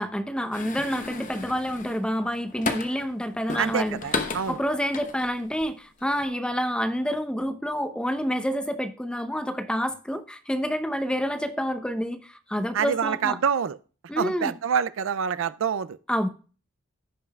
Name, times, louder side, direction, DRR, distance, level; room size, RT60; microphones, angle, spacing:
voice 1, 0.0-4.0 4.5-13.4 14.1-14.5 16.1-16.3, equal, 5° left, 0.6 m, -28 dB
sound 1, 0.5-3.1 3.5-5.6 6.0-6.3, left 3 dB, 35° left, 0.9 m, -34 dB
voice 2, 3.6-4.6 12.7-13.8 14.2-16.0, right 7 dB, 65° right, 0.4 m, -26 dB
16.0 x 5.4 x 2.3 m
head